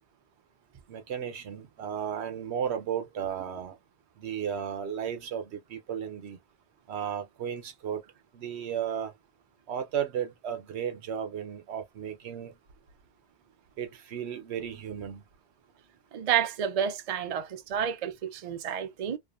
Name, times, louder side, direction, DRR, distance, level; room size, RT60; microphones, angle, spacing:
voice 1, 0.9-3.8 4.2-6.4 6.9-8.0 8.3-9.1 9.7-12.5 13.8-15.2, right 8 dB, 75° right, 0.9 m, -34 dB
voice 2, 16.1-19.2, right 9 dB, 55° right, 0.4 m, -30 dB
2.5 x 2.4 x 2.3 m
omnidirectional pair, 1.1 m